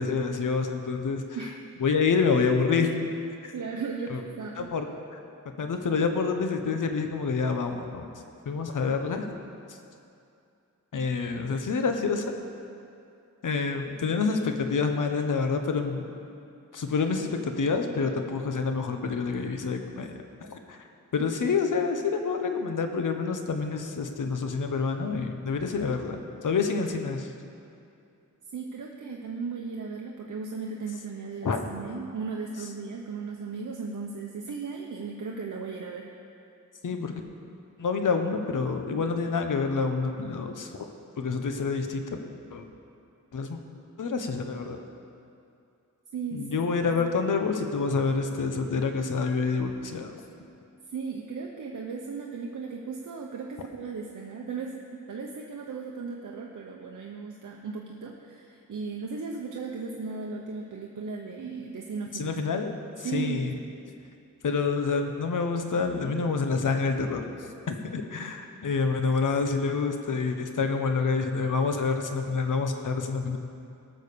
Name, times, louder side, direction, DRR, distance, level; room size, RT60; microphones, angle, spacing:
voice 1, 0.0-1.2 1.8-3.1 3.4-3.5 4.1-4.2 4.6-4.9 5.6-8.1 8.4-9.3 10.9-12.3 13.4-16.1 16.7-20.1 20.4-20.8 21.1-27.3 31.4-31.6 36.8-37.2 37.8-40.9 41.2-42.2 42.5-42.7 43.3-43.6 44.0-44.8 46.3-50.1 62.1-63.6 64.4-67.2 67.7-73.4, left 4 dB, 80° left, 5 dB, 1.1 m, -27 dB
voice 2, 3.5-4.7 28.5-36.1 46.1-47.0 50.9-62.4 63.0-63.5 68.9-69.0, right 4 dB, 80° right, 0 dB, 0.9 m, -36 dB
18.0 x 6.5 x 6.8 m, 2.5 s
wide cardioid pair, 155°, 31 cm